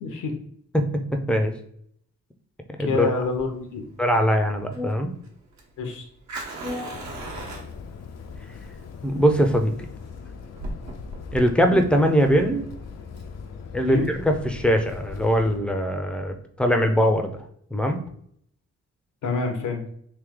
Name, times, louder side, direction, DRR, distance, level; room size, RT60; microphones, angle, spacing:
voice 1, 0.0-0.3 2.9-3.8 5.8-6.0 13.8-14.1 19.2-19.8, left 4 dB, 85° left, 3 dB, 0.9 m, -27 dB
Fire, 3.2-14.3, right 2 dB, 65° right, 1.1 m, -40 dB
voice 2, 4.0-5.1 6.6-7.0 9.0-9.7 11.3-12.7 13.7-17.3 17.7-18.0, equal, 5° left, 4 dB, 0.5 m, -21 dB
sound 1, 6.9-15.6, left 5 dB, 60° left, 0.5 m, -40 dB
3.3 x 2.8 x 3.7 m, 0.66 s
cardioid pair, 90°, 30 cm